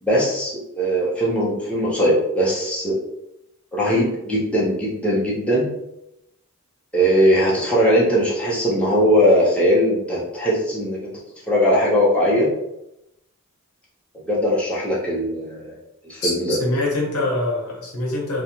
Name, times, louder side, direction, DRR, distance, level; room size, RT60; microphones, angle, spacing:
voice 1, 0.0-3.0 3.7-5.7 6.9-11.1 11.5-12.5 14.3-15.8 16.0-16.6, equal, 5° left, -7 dB, 0.6 m, -20 dB
voice 2, 16.2-18.4, left 2 dB, 90° left, -3 dB, 0.9 m, -24 dB
2.5 x 2.2 x 2.9 m, 0.84 s
head